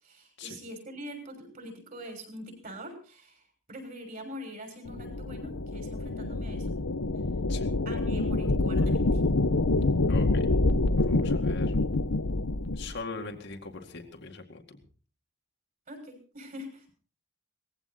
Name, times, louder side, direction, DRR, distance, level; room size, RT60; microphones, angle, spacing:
voice 1, 0.0-3.4 3.7-6.8 7.8-9.2 15.9-16.9, equal, 40° right, 4 dB, 6.6 m, -43 dB
sound 1, 4.9-12.9, left 2 dB, 75° left, 1.0 m, -26 dB
voice 2, 10.1-10.5 11.0-11.8 12.7-14.8, left 4 dB, 55° left, 3 dB, 2.1 m, -41 dB
19.5 x 15.5 x 4.3 m, 0.39 s
head